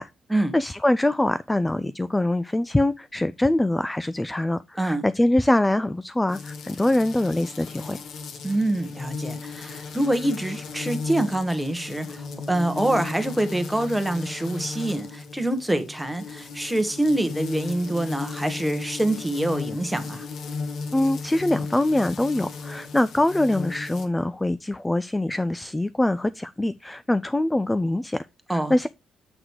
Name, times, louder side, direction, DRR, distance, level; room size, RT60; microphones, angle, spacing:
voice 1, 0.0-8.0 20.9-28.9, left 1 dB, 10° left, 0.3 m, -24 dB
sound 1, 6.3-24.1, left 4 dB, 70° left, 1.3 m, -36 dB
voice 2, 8.4-20.3 28.5-28.7, right 1 dB, 5° right, 1.3 m, -25 dB
8.0 x 3.8 x 4.6 m
cardioid pair, 90°, 0 cm